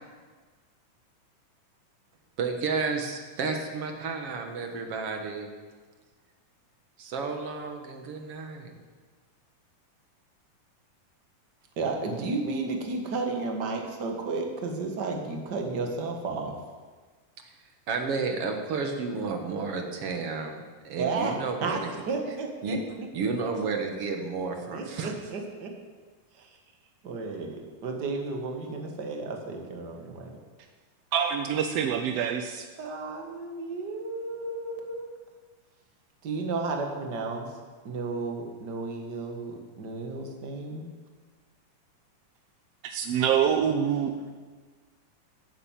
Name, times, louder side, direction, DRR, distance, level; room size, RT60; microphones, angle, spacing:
voice 1, 2.4-5.5 7.0-8.7 17.4-17.5 17.9-21.9 22.6-25.1, right 4 dB, 55° right, 4 dB, 2.0 m, -32 dB
voice 2, 11.8-16.5 21.0-21.4 21.6-21.8 22.1-23.1 24.7-25.7 26.3-26.6 27.0-30.4 32.8-35.0 36.2-37.5 37.8-40.9, right 3 dB, 40° right, 2 dB, 1.9 m, -33 dB
voice 3, 31.1-32.6 42.8-44.1, right 8 dB, 75° right, 5 dB, 1.4 m, -26 dB
16.5 x 8.1 x 7.5 m, 1.5 s
omnidirectional pair, 3.7 m